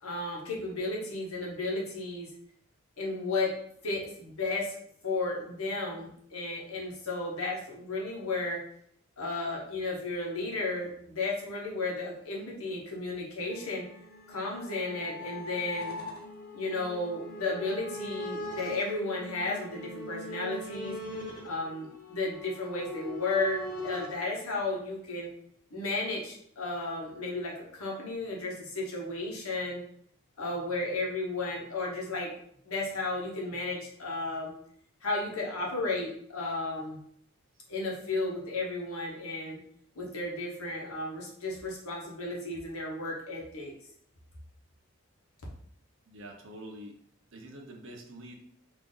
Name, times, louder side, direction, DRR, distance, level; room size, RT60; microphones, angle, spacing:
voice 1, 0.0-2.3 3.0-3.5 3.8-4.8 5.0-8.6 9.2-13.8 14.3-16.0 16.5-20.9 21.4-25.3 25.7-29.8 30.4-32.3 32.6-34.5 35.0-37.0 37.7-39.6 40.0-43.7, left 2 dB, 80° left, -2 dB, 1.2 m, -33 dB
sound 1, 13.5-24.2, left 1 dB, 40° left, 0.7 m, -41 dB
voice 2, 46.1-47.0 47.3-48.4, right 1 dB, 60° right, 1 dB, 0.7 m, -46 dB
3.5 x 2.5 x 3.8 m, 0.67 s
head